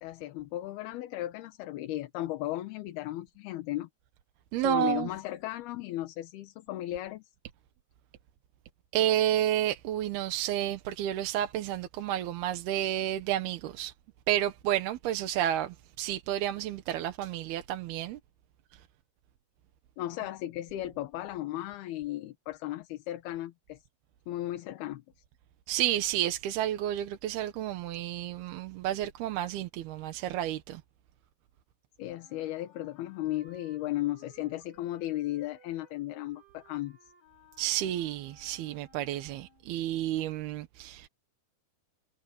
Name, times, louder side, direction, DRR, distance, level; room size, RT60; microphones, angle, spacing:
voice 1, 0.0-3.9 4.6-7.3 20.0-23.8 24.3-25.0 32.0-37.0, left 15 dB, 80° left, 3.1 m, -35 dB
voice 2, 4.5-5.1 8.9-13.9 14.3-18.2 18.7-18.8 25.7-30.8 37.6-41.1, right 12 dB, 80° right, 3.1 m, -31 dB
Wind instrument woodwind instrument, 32.0-39.8, right 2 dB, 30° right, 8.5 m, -60 dB
omnidirectional pair, 4.5 m